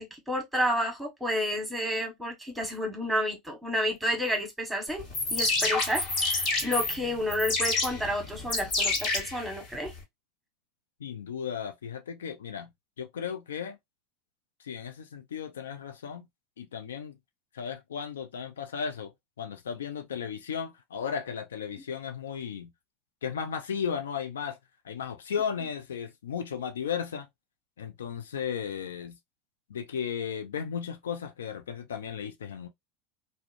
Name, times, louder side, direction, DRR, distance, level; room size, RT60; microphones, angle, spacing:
voice 1, 0.0-5.0 5.3-9.9, equal, 5° right, 1.2 m, -30 dB
sound 1, 5.0-10.0, left 3 dB, 50° left, 1.3 m, -29 dB
voice 2, 11.0-12.7 13.0-13.8 14.6-16.3 16.6-17.2 17.5-19.1 19.4-22.7 23.2-24.6 24.8-27.3 27.8-29.2 29.7-32.7, left 7 dB, 85° left, 0.4 m, -35 dB
2.4 x 2.1 x 2.4 m
hypercardioid pair, 90°, 0 cm